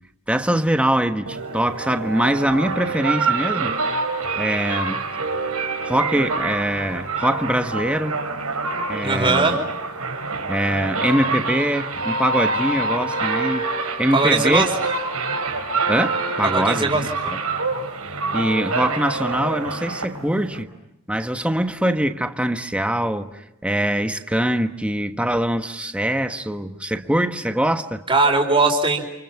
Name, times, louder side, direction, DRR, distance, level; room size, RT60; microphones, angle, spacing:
voice 1, 0.3-3.8 4.4-5.0 5.8-8.3 8.9-9.6 10.5-13.7 14.0-14.7 15.9-16.9 17.3-17.4 18.3-20.7 21.1-28.0, right 1 dB, 5° right, 1.3 m, -23 dB
sound 1, 1.3-20.6, right 3 dB, 80° right, 5.0 m, -26 dB
voice 2, 9.0-9.6 14.1-14.7 16.5-17.0 28.1-29.1, right 3 dB, 25° right, 4.5 m, -19 dB
29.5 x 28.5 x 5.8 m
head